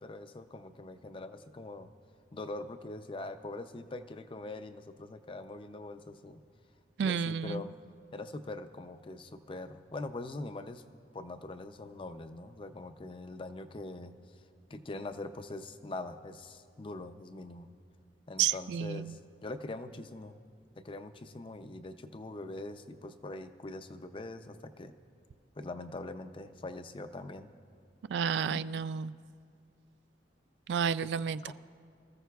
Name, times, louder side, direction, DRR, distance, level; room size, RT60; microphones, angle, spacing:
voice 1, 0.0-1.9 2.3-6.4 7.0-7.8 8.1-10.8 11.1-14.2 14.7-17.7 18.3-20.4 20.8-24.9 25.6-27.5 28.5-28.6 31.4-31.5, left 2 dB, 30° left, 10 dB, 0.5 m, -43 dB
voice 2, 7.0-7.6 18.4-19.1 28.1-29.1 30.7-31.4, right 7 dB, 75° right, 15 dB, 0.3 m, -31 dB
24.0 x 14.5 x 2.3 m, 2.2 s
head